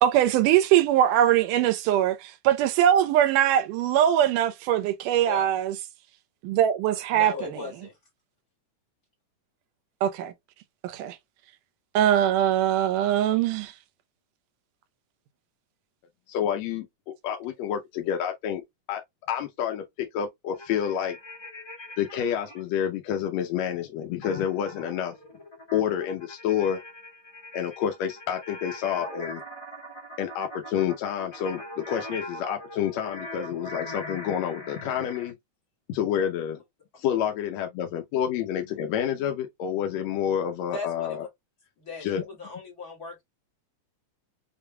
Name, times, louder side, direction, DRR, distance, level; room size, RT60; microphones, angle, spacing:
voice 1, 0.0-5.8 6.4-7.5 10.0-10.3 10.8-11.2 11.9-13.7, right 11 dB, 85° right, 2.4 m, -22 dB
voice 2, 5.2-5.5 7.1-7.9 40.7-41.3 41.8-43.2, left 3 dB, 35° left, 2.0 m, -38 dB
voice 3, 16.3-16.9 17.2-18.6 18.9-19.0 19.3-21.2 22.0-25.1 25.7-26.8 27.5-29.4 30.2-35.3 35.9-36.6 37.0-41.3 42.0-42.2, left 9 dB, 75° left, 1.7 m, -28 dB
sound 1, 20.5-22.6 24.2-35.3, left 1 dB, 15° left, 0.9 m, -41 dB
6.7 x 2.9 x 2.2 m
omnidirectional pair, 3.7 m